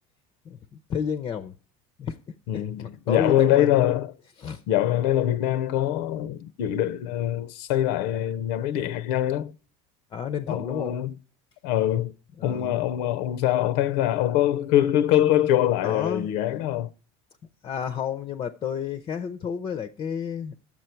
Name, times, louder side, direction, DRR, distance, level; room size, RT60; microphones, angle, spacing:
voice 1, 0.9-1.5 2.0-3.7 4.4-4.6 10.1-11.0 12.4-12.8 15.8-16.3 17.6-20.5, left 8 dB, 30° left, 0.5 m, -31 dB
voice 2, 2.5-4.1 4.7-9.5 10.5-11.1 11.6-12.1 12.4-16.9, left 12 dB, 75° left, 0.6 m, -23 dB
9.6 x 7.3 x 4.4 m
cardioid pair, 130°, 15 cm